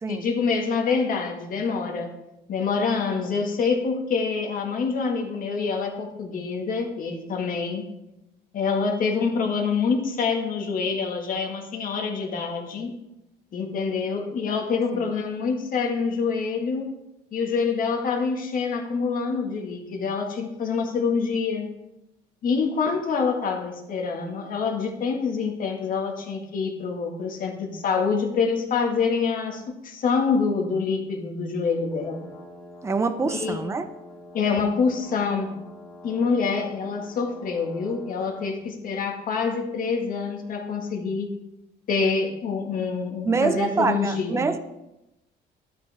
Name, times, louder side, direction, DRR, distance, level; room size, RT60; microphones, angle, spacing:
voice 1, 0.1-2.1 2.5-7.8 8.5-12.9 13.5-16.9 17.3-21.7 22.4-32.3 33.2-33.6 34.3-35.5 36.0-41.3 41.9-44.5, left 5 dB, 55° left, 2 dB, 1.7 m, -26 dB
sound 1, 31.9-38.6, left 1 dB, 25° left, 2.9 m, -46 dB
voice 2, 32.8-33.9 43.3-44.6, right 4 dB, 15° right, 9 dB, 0.6 m, -25 dB
12.0 x 6.1 x 3.5 m, 0.90 s
cardioid pair, 110°, 17 cm